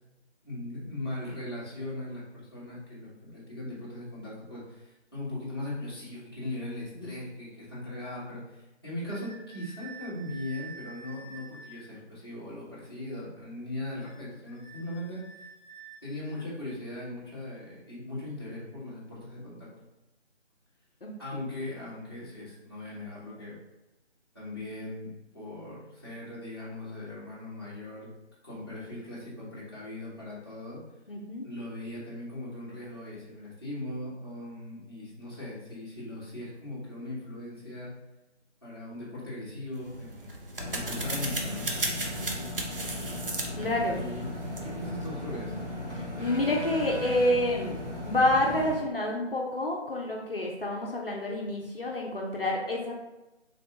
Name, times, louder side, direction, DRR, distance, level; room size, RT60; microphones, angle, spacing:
voice 1, 0.4-15.2 16.0-19.7 21.2-23.6 24.3-28.1 28.4-30.8 31.4-37.9 38.6-40.3 40.6-41.7 43.9-44.2 44.6-45.7, left 1 dB, 20° left, -10 dB, 0.9 m, -39 dB
sound 1, 9.1-11.8 14.0-16.5, right 4 dB, 25° right, 0.8 m, -48 dB
voice 2, 31.1-31.5 42.2-42.5 43.6-44.0 46.0-52.9, left 1 dB, 55° left, -2 dB, 0.6 m, -28 dB
sound 2, 39.8-45.1, right 2 dB, 55° right, 0.6 m, -36 dB
sound 3, 40.6-48.8, left 1 dB, 90° right, 1.5 m, -37 dB
3.4 x 3.2 x 2.7 m, 1.0 s
figure-of-eight pair, 165°, 35 cm